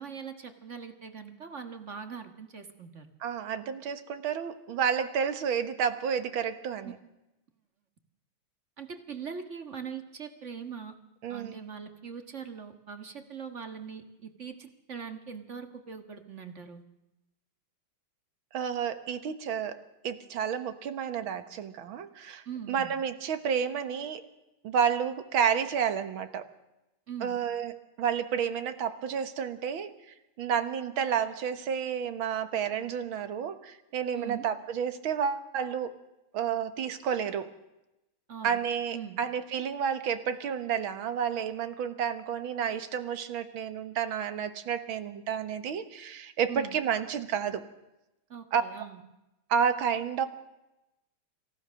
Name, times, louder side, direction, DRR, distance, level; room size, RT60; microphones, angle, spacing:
voice 1, 0.0-3.1 6.8-6.9 8.8-10.9 11.3-16.8 22.5-22.9 27.1-27.4 34.1-34.5 38.3-38.6 38.9-39.2 46.5-46.8 48.3-49.0, right 7 dB, 35° right, 7 dB, 1.7 m, -41 dB
voice 2, 3.2-7.0 11.2-11.6 18.5-24.3 24.6-26.5 27.2-27.7 28.0-29.9 30.4-35.9 36.3-37.5 38.4-47.6 48.5-48.6 49.5-50.3, right 7 dB, 70° right, 11 dB, 2.0 m, -30 dB
26.5 x 15.5 x 6.4 m, 0.95 s
omnidirectional pair, 2.3 m